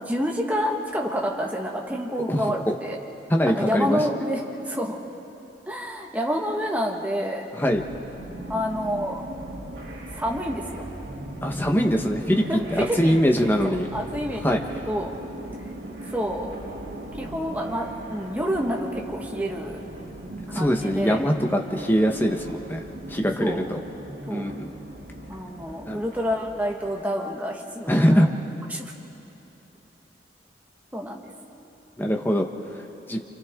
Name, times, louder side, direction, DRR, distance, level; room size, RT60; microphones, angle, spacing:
voice 1, 0.0-3.0 3.5-4.4 4.7-5.0 5.7-7.5 8.5-9.2 10.1-10.8 12.5-15.1 16.1-16.5 17.1-19.8 20.5-21.3 23.4-23.6 24.3-24.5 25.3-28.3 28.7-28.9 30.9-31.2, equal, 10° right, -1 dB, 1.6 m, -28 dB
voice 2, 3.3-4.0 7.6-7.8 11.4-13.9 14.4-14.6 20.5-22.8 23.1-23.8 24.3-24.7 25.9-26.0 27.9-28.3 32.0-32.5 33.1-33.2, equal, 10° left, 2 dB, 1.2 m, -22 dB
sound 1, 7.7-26.9, right 1 dB, 80° right, 2.8 m, -38 dB
28.0 x 28.0 x 3.8 m, 2.9 s
head